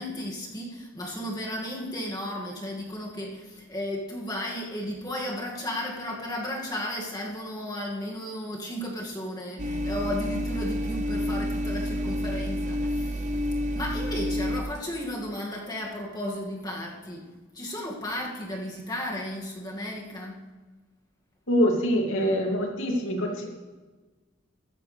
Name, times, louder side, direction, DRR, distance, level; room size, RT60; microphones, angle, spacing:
voice 1, 0.0-13.3 13.7-17.2 17.5-20.4, left 1 dB, 20° left, -2 dB, 2.2 m, -34 dB
sound 1, 9.6-14.6, equal, 40° right, 0.8 m, -29 dB
voice 2, 21.5-23.5, equal, 80° left, 0 dB, 2.6 m, -24 dB
15.0 x 13.0 x 3.4 m, 1.3 s
head